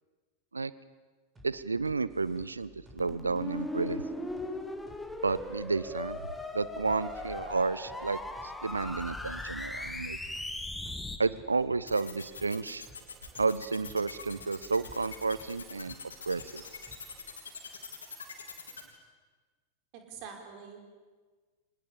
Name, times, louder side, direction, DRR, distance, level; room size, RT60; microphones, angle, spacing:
sound 1, 1.4-17.3, right 1 dB, 15° right, 6.6 m, -57 dB
voice 1, 1.4-4.0 5.2-6.3 6.5-10.2 11.2-12.8 13.4-16.0 16.3-16.6, right 4 dB, 80° right, 17 dB, 0.7 m, -31 dB
sound 2, 3.0-11.2, left 2 dB, 5° left, 2.0 m, -38 dB
sound 3, 11.9-18.8, left 6 dB, 70° left, 3.8 m, -44 dB
voice 2, 19.9-20.9, right 6 dB, 45° right, 3 dB, 5.2 m, -46 dB
25.0 x 20.5 x 8.6 m, 1.4 s
figure-of-eight pair, 90°, 0 cm